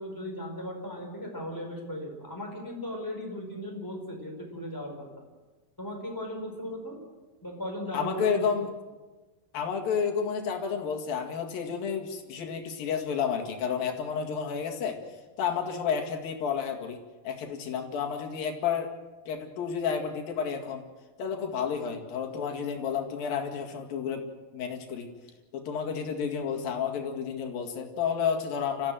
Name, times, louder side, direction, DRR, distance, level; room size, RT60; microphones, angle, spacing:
voice 1, 0.0-5.1 5.8-7.0 7.4-8.3, equal, 5° left, 1 dB, 4.4 m, -37 dB
voice 2, 7.9-8.7 9.5-17.0 17.2-18.9 19.3-20.8 21.2-25.1 25.5-28.9, left 7 dB, 75° left, 2 dB, 3.9 m, -31 dB
29.5 x 14.5 x 7.7 m, 1.2 s
omnidirectional pair, 4.1 m